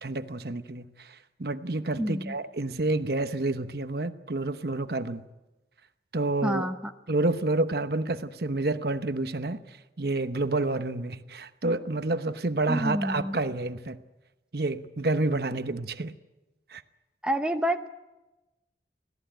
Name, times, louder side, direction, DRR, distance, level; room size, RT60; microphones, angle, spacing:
voice 1, 0.0-5.3 6.1-6.7 7.1-9.6 10.0-14.0 14.5-16.1 16.7-16.8, right 2 dB, 60° right, 1.0 m, -29 dB
voice 2, 2.0-2.3 6.4-6.8 12.7-13.4 17.2-17.9, equal, 5° right, 0.8 m, -28 dB
25.0 x 17.0 x 9.0 m
head